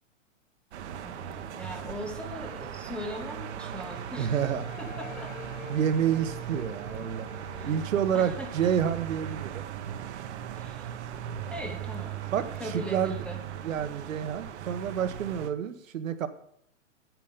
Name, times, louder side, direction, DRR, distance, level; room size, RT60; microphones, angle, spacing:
sound 1, 0.7-15.5, right 10 dB, 60° right, 1.0 m, -38 dB
voice 1, 1.0-5.3 7.6-7.7 8.1-8.7 10.5-10.9 11.5-13.4, equal, 5° left, 2 dB, 0.6 m, -40 dB
sound 2, 3.1-9.9, left 8 dB, 75° left, 0.9 m, -48 dB
voice 2, 4.2-4.8 5.7-7.3 7.6-9.7 12.3-13.2 13.6-16.3, right 8 dB, 80° right, 10 dB, 1.2 m, -29 dB
9.3 x 8.4 x 5.2 m, 0.72 s
hypercardioid pair, 150°, 39 cm